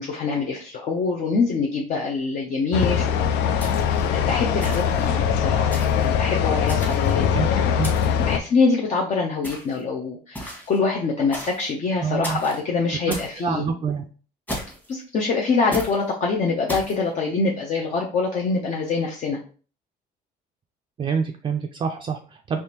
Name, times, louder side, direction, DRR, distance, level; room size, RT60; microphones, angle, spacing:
voice 1, 0.0-3.7 4.1-7.9 8.1-13.7 14.9-19.4, left 4 dB, 50° left, -1 dB, 0.6 m, -25 dB
sound 1, 2.7-8.4, left 8 dB, 85° left, 0.4 m, -22 dB
sound 2, 3.6-4.1 4.6-5.1 5.7-6.1 6.7-7.3 7.8-8.3 9.4-9.8 10.4-10.8 11.3-11.7 12.2-12.6 13.1-13.4 14.5-14.9 15.7-16.0 16.7-17.0, equal, 10° left, 1.2 m, -34 dB
voice 2, 7.3-7.9 12.0-12.4 13.1-13.2 13.4-14.0 21.0-22.6, right 6 dB, 30° right, 4 dB, 0.3 m, -27 dB
3.5 x 3.0 x 2.9 m, 0.39 s
cardioid pair, 110°, 17 cm